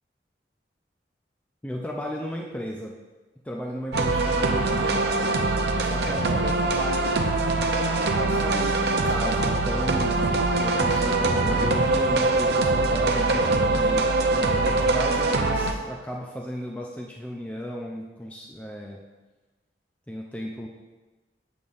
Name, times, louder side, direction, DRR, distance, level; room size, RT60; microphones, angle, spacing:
voice 1, 1.6-3.0 3.4-5.0 5.8-7.2 8.2-10.3 10.6-14.0 14.3-19.0 20.1-20.7, equal, 10° left, -1 dB, 0.4 m, -34 dB
sound 1, 3.9-15.7, right 2 dB, 70° right, 0.6 m, -23 dB
8.1 x 7.0 x 2.5 m, 1.2 s
head